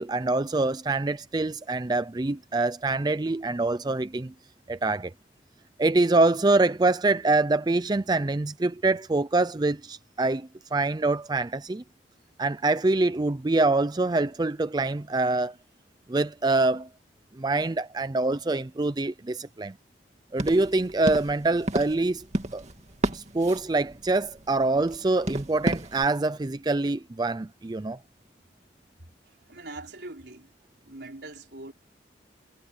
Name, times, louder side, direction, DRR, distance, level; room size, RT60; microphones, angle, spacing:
voice 1, 0.0-4.3 4.7-5.1 5.8-11.8 12.4-15.5 16.1-16.9 17.4-19.7 20.3-22.2 22.5-22.6 23.1-28.0, right 2 dB, 25° right, 0.4 m, -25 dB
sound 1, 20.4-26.1, right 1 dB, 40° right, 2.2 m, -33 dB
voice 2, 29.5-30.5 30.8-31.7, right 2 dB, 70° right, 3.9 m, -42 dB
head